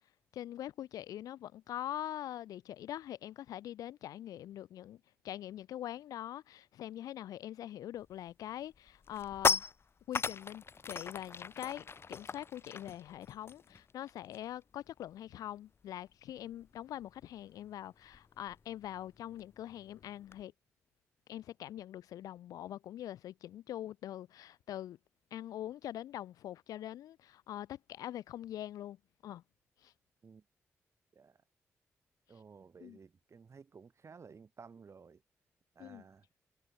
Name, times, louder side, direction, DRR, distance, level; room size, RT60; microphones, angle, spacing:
voice 1, 0.3-9.6 10.1-20.5 21.3-25.0 25.3-29.0 29.2-29.4 29.8-29.9 32.8-33.0 35.8-36.0, left 12 dB, 80° left, 0.7 m, -43 dB
sound 1, 8.1-8.3 8.7-14.6 14.9-15.1 15.4-20.4, left 5 dB, 40° left, 0.5 m, -38 dB
voice 2, 32.3-35.2 35.7-36.2, right 5 dB, 50° right, 1.3 m, -55 dB
hypercardioid pair, 40°, 6 cm